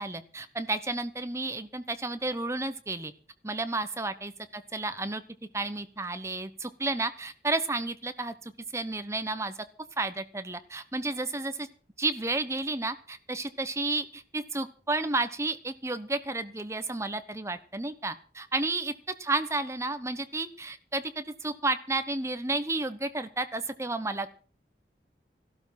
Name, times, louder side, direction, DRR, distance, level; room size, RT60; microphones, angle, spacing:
voice 1, 0.0-3.1 3.4-5.2 5.5-9.5 10.0-11.7 12.0-18.9 19.2-24.3, right 2 dB, 15° right, 10 dB, 1.1 m, -32 dB
15.0 x 12.5 x 5.9 m, 0.40 s
head